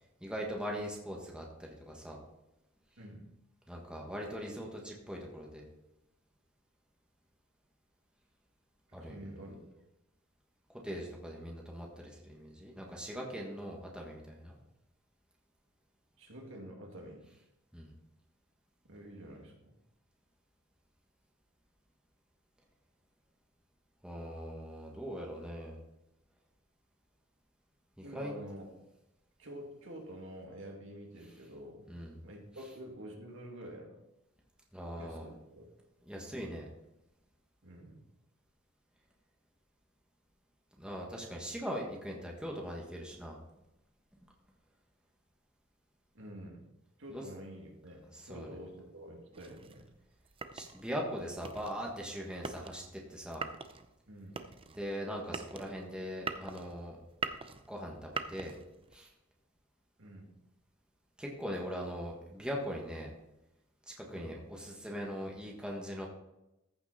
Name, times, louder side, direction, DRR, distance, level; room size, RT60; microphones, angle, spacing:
voice 1, 0.2-2.2 3.7-5.7 8.9-9.2 10.7-14.5 17.7-17.9 24.0-25.8 28.0-28.3 31.9-32.2 34.7-35.3 36.1-36.7 40.8-43.4 47.1-47.2 48.1-48.5 50.5-53.5 54.7-57.0 57.7-58.6 58.9-59.1 61.2-63.1 63.9-66.1, equal, 5° right, -2 dB, 1.5 m, -41 dB
voice 2, 9.0-9.6 13.6-13.8 16.2-17.3 18.9-19.7 28.0-28.7 29.4-31.8 32.2-34.0 34.9-35.7 37.6-38.0 46.1-46.7 47.0-49.8 54.1-54.4 60.0-60.3 64.1-64.4, equal, 65° right, 0 dB, 2.3 m, -48 dB
sound 1, 49.3-59.0, right 4 dB, 25° right, 0.6 m, -43 dB
14.5 x 5.9 x 4.2 m, 0.94 s
head